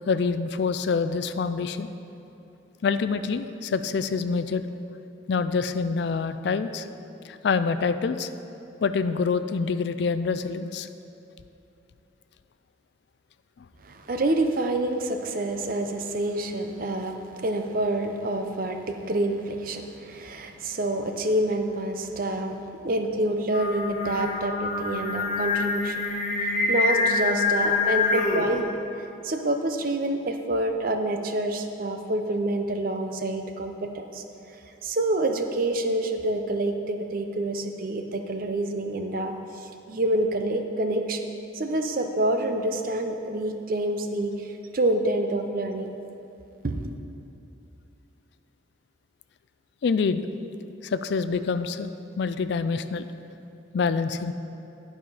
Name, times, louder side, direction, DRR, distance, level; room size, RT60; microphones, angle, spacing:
voice 1, 0.1-1.9 2.8-4.7 5.3-6.9 7.2-8.3 8.8-10.9 13.6-13.7 49.8-50.2 50.8-51.9 52.2-53.1 53.7-54.3, left 5 dB, 60° left, 11 dB, 0.3 m, -26 dB
voice 2, 13.8-26.0 26.4-28.7 29.2-34.2 34.8-45.9 46.6-46.8, right 1 dB, 45° right, 6 dB, 0.6 m, -27 dB
Singing, 23.5-28.6, left 3 dB, 45° left, 0.9 m, -26 dB
11.0 x 4.9 x 5.4 m, 2.8 s
head